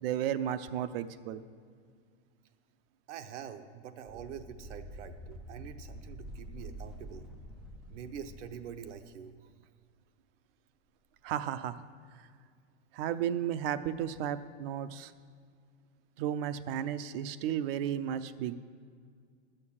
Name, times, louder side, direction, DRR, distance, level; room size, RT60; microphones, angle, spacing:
voice 1, 0.0-1.4 11.2-11.8 12.9-15.1 16.2-18.5, right 10 dB, 55° right, 13 dB, 0.6 m, -33 dB
voice 2, 3.1-7.3 7.9-9.3, right 8 dB, 80° right, 7 dB, 0.9 m, -45 dB
sound 1, 4.1-9.0, equal, ahead, 0.3 m, -47 dB
10.5 x 6.6 x 7.3 m, 2.1 s
supercardioid pair, 145°, 36 cm